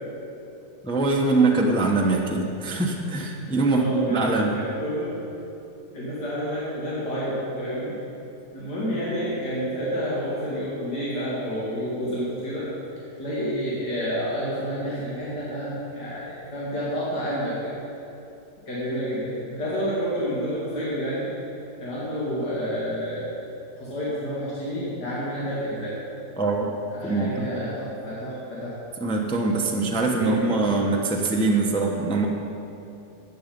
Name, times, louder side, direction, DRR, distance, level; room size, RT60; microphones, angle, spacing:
voice 1, 0.8-4.6 26.4-26.7 27.0-27.5 29.0-32.3, right 3 dB, 5° left, 0 dB, 0.7 m, -23 dB
voice 2, 3.7-4.2 4.5-5.1 5.9-8.0 8.5-12.7 13.2-17.7 18.7-21.3 21.8-23.3 23.8-25.9 26.9-28.8 30.0-30.5, equal, 75° left, -8 dB, 3.0 m, -29 dB
15.0 x 8.7 x 5.3 m, 2.8 s
omnidirectional pair, 1.8 m